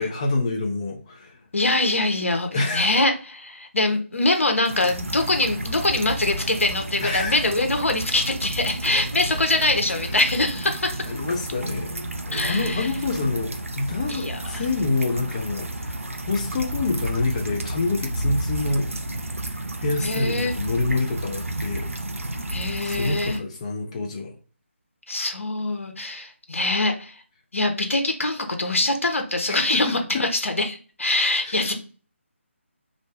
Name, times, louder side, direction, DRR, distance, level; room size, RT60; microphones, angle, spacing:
voice 1, 0.0-1.4 2.5-2.9 7.0-7.4 11.1-16.0 16.3-18.9 19.8-21.9 22.8-24.3 31.4-31.7, left 3 dB, 25° left, 1 dB, 0.6 m, -27 dB
voice 2, 1.5-11.0 12.3-12.9 14.1-14.6 20.0-20.6 22.5-23.4 25.1-27.2 27.5-31.7, left 2 dB, 75° left, 5 dB, 0.8 m, -24 dB
sound 1, 4.6-23.4, right 1 dB, 90° right, 0.5 m, -31 dB
2.6 x 2.1 x 3.3 m, 0.37 s
figure-of-eight pair, 155°, 7 cm